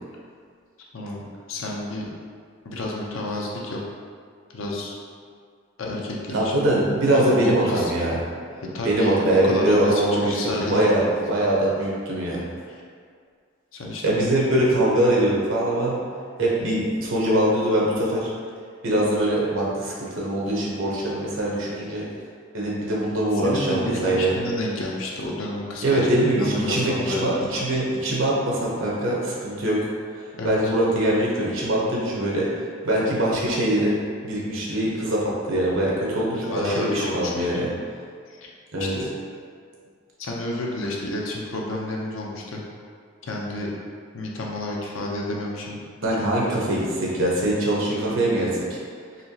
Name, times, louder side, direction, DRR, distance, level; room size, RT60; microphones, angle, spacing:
voice 1, 1.5-2.1 2.6-3.8 4.5-5.0 5.8-6.6 7.1-7.9 8.7-11.2 12.7-12.8 13.7-14.4 16.4-16.5 23.4-27.3 30.4-30.6 36.5-37.6 38.3-38.5 38.8-39.1 40.2-42.6 43.2-43.7 44.1-45.8 46.2-46.6, left 2 dB, 85° left, -2 dB, 0.7 m, -30 dB
voice 2, 6.3-8.2 8.8-11.0 11.3-12.4 14.0-16.0 16.4-18.3 18.8-22.1 22.5-24.4 25.8-29.8 30.1-32.5 32.8-34.0 34.2-37.7 38.7-38.9 46.0-48.8, right 1 dB, 80° right, -5 dB, 1.0 m, -22 dB
4.2 x 2.9 x 2.8 m, 2.1 s
head